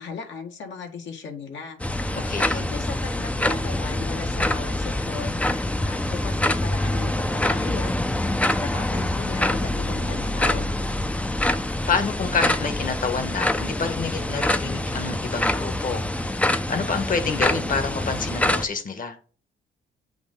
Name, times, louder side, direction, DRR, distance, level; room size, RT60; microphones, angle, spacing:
voice 1, 0.0-1.8 2.5-5.4 5.8-8.0 8.4-10.7, left 5 dB, 70° left, 1.7 m, -37 dB
sound 1, 1.8-18.7, left 1 dB, 5° left, 0.5 m, -25 dB
voice 2, 2.3-2.7 11.9-16.0 16.7-19.2, left 5 dB, 45° left, 1.4 m, -27 dB
8.1 x 2.7 x 5.2 m
cardioid pair, 90°, 20 cm